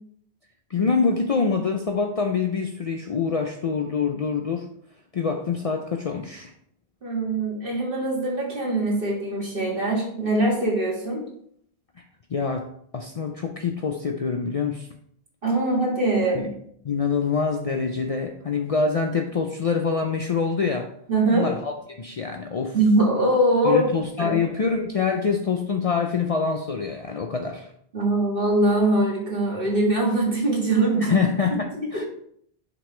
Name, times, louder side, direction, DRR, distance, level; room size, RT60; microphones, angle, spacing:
voice 1, 0.7-4.7 5.1-6.5 12.0-12.1 12.3-12.7 12.9-14.9 16.3-16.5 16.8-20.9 21.3-22.8 23.6-27.7 31.0-32.1, left 5 dB, 50° left, 4 dB, 0.5 m, -25 dB
voice 2, 7.0-11.2 15.4-16.5 21.1-21.5 22.7-23.9 24.2-24.4 27.9-31.1, right 2 dB, 60° right, -2 dB, 1.9 m, -22 dB
6.0 x 5.2 x 3.2 m, 0.66 s
omnidirectional pair, 1.1 m